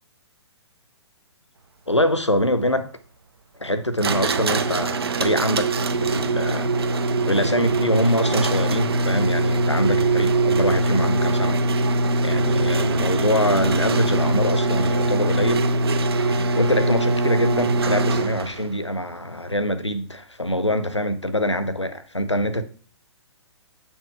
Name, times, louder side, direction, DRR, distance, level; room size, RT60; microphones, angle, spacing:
voice 1, 1.9-2.9 3.6-6.7 7.2-11.6 12.2-15.7 16.1-22.6, left 1 dB, 90° left, 0.9 m, -24 dB
sound 1, 4.0-18.7, right 2 dB, 60° right, 0.9 m, -22 dB
8.1 x 6.2 x 3.5 m
figure-of-eight pair, 120°, 14 cm